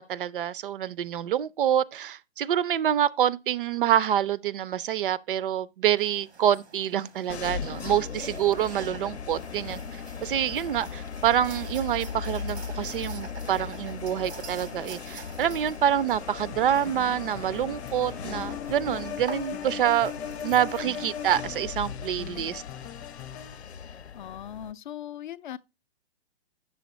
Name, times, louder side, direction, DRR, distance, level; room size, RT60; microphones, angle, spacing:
voice 1, 0.0-20.1 20.4-22.6, right 10 dB, 55° right, 0.4 m, -26 dB
sound 1, 6.0-21.3, right 5 dB, 85° right, 1.0 m, -47 dB
sound 2, 7.3-24.7, left 7 dB, 85° left, 0.7 m, -37 dB
sound 3, 16.2-23.8, left 11 dB, 30° left, 0.8 m, -44 dB
voice 2, 24.1-25.6, left 10 dB, 50° left, 0.4 m, -39 dB
7.6 x 6.3 x 3.0 m
figure-of-eight pair, 125°, 32 cm